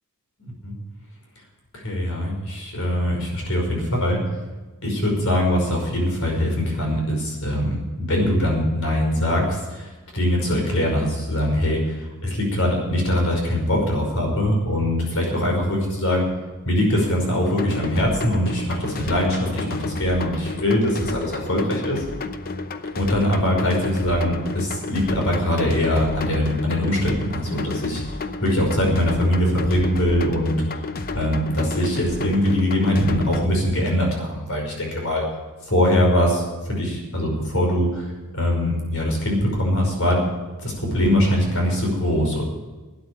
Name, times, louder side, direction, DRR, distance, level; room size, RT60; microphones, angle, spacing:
voice 1, 1.7-4.2 4.8-16.3 16.6-22.0 23.0-28.0 28.4-30.6 31.1-35.2 35.7-38.1 38.3-40.2 40.6-42.4, left 1 dB, 65° left, 0 dB, 5.5 m, -22 dB
sound 1, 17.5-33.5, left 3 dB, 40° left, 0.8 m, -31 dB
13.0 x 9.4 x 8.7 m, 1.2 s
head